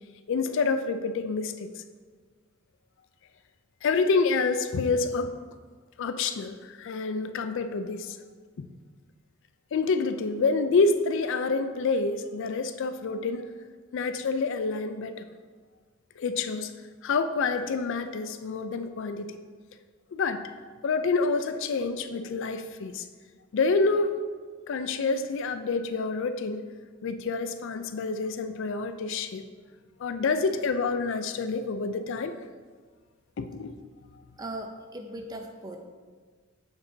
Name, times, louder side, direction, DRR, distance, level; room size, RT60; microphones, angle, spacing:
voice 1, 0.3-1.8 3.8-5.3 6.0-8.2 8.6-8.7 9.7-13.5 13.9-15.3 16.2-16.7 17.0-19.4 20.1-20.5 20.8-23.1 23.5-24.1 24.7-26.6 27.0-29.5 30.0-32.4 33.4-33.7, left 4 dB, 65° left, 9 dB, 0.4 m, -27 dB
voice 2, 34.4-35.9, right 1 dB, 20° right, 4 dB, 0.6 m, -38 dB
7.0 x 6.6 x 2.7 m, 1.5 s
head